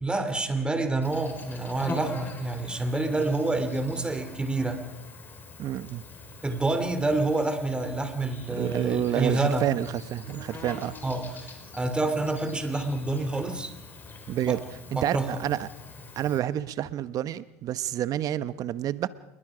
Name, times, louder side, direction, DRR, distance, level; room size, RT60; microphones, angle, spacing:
voice 1, 0.0-4.8 6.4-9.7 11.0-13.7 14.4-14.6 14.9-15.4, right 2 dB, 10° right, 9 dB, 3.2 m, -28 dB
Insect, 1.0-16.4, left 3 dB, 25° left, 4.8 m, -44 dB
voice 2, 5.6-6.0 8.5-11.0 14.3-14.6 14.9-15.7 16.2-19.1, right 12 dB, 50° right, 15 dB, 1.0 m, -29 dB
27.5 x 21.5 x 5.1 m, 0.89 s
hypercardioid pair, 90°, 8 cm